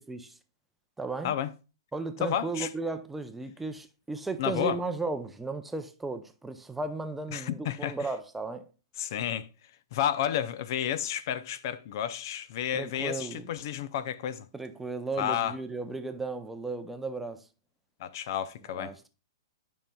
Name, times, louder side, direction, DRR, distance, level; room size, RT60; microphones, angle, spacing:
voice 1, 0.1-0.4 1.0-1.4 1.9-8.7 12.7-13.5 14.5-17.5 18.7-19.0, right 3 dB, 5° right, 0.6 m, -35 dB
voice 2, 2.2-2.7 4.4-4.8 7.3-8.0 9.0-9.5 9.9-14.5 15.2-15.6 18.0-18.9, left 10 dB, 50° left, 0.5 m, -31 dB
11.5 x 5.5 x 2.3 m
hypercardioid pair, 145°, 2 cm